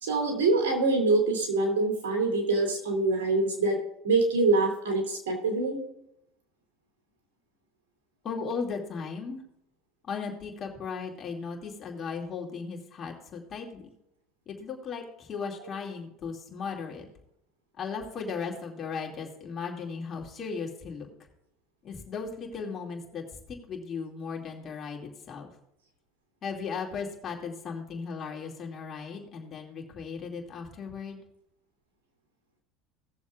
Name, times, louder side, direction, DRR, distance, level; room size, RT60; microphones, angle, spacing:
voice 1, 0.0-3.8 4.0-5.8, right 3 dB, 90° right, 2 dB, 2.7 m, -25 dB
voice 2, 8.2-9.4 10.0-13.9 14.5-17.1 17.8-21.1 21.8-25.5 26.4-31.2, left 5 dB, 40° left, 1 dB, 2.4 m, -36 dB
18.5 x 7.1 x 2.5 m, 0.79 s
supercardioid pair, 95°, 0 cm